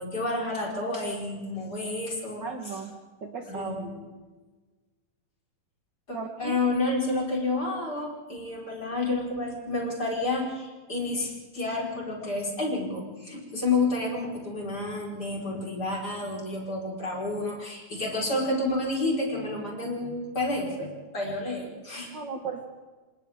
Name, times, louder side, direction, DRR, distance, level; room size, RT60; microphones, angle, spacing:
voice 1, 0.0-2.8 3.5-4.0 6.1-22.1, left 2 dB, 25° left, -3 dB, 4.9 m, -30 dB
voice 2, 2.4-2.9 3.2-3.8 6.1-6.6 22.1-22.7, right 4 dB, 55° right, 4 dB, 1.2 m, -35 dB
28.5 x 26.5 x 3.6 m, 1.3 s
omnidirectional pair, 4.2 m